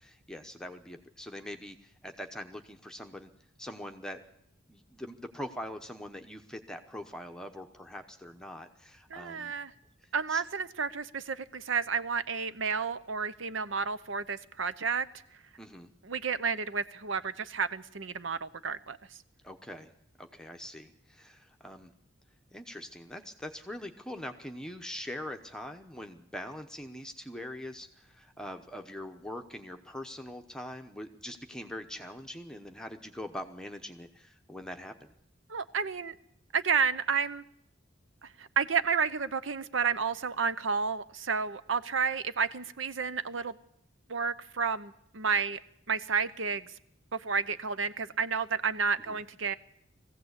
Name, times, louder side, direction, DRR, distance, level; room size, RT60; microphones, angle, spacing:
voice 1, 0.0-3.3 3.6-4.2 4.7-9.5 10.3-10.4 15.6-15.9 19.4-19.9 20.2-21.9 22.5-34.9 49.1-49.2, left 1 dB, 5° left, 4 dB, 0.9 m, -43 dB
voice 2, 9.1-9.7 10.1-15.0 16.0-19.0 35.5-36.1 36.5-37.4 38.2-43.6 44.1-45.6 45.9-46.7 47.1-49.5, right 5 dB, 70° right, 14 dB, 0.8 m, -31 dB
21.0 x 15.5 x 8.1 m, 0.77 s
head